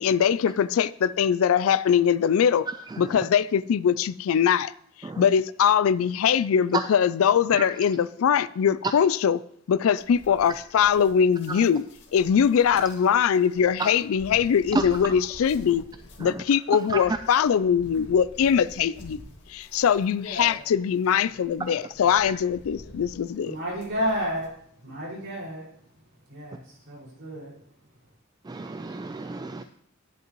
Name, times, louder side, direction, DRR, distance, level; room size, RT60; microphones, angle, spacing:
voice 1, 0.0-2.7 3.0-4.7 5.2-9.4 9.7-11.8 12.1-15.8 16.2-19.2 19.5-23.6, left 8 dB, 80° left, 0.4 m, -22 dB
voice 2, 2.9-3.2 5.0-5.2 7.5-7.6 11.5-11.6 13.8-13.9 14.7-14.8 16.2-16.4 16.7-17.2 28.4-29.6, right 3 dB, 20° right, 0.3 m, -30 dB
sound 1, 10.0-24.5, left 1 dB, 60° left, 2.0 m, -47 dB
voice 3, 23.4-24.5 24.8-25.7 26.3-27.5, equal, 60° right, 5.1 m, -31 dB
11.0 x 11.0 x 3.0 m
head